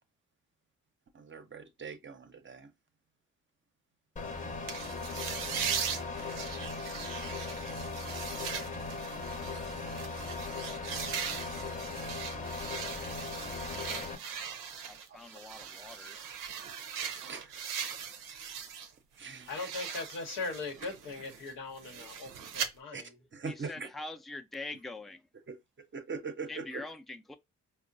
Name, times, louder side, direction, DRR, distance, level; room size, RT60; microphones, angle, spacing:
voice 1, 1.1-2.7 15.1-15.3 17.2-17.5 19.2-19.7 22.9-23.0 23.3-23.9 25.5-25.6 25.9-26.8, right 5 dB, 35° right, 0.6 m, -42 dB
sound 1, 4.2-14.2, left 3 dB, 25° left, 0.8 m, -38 dB
sound 2, 4.7-18.9 19.2-22.7, right 7 dB, 90° right, 0.5 m, -40 dB
voice 2, 13.6-14.2 14.9-16.2 23.4-25.2 26.5-27.4, left 2 dB, ahead, 0.4 m, -44 dB
voice 3, 19.5-23.2, left 3 dB, 85° left, 0.9 m, -40 dB
4.3 x 2.0 x 2.5 m
supercardioid pair, 50°, 32 cm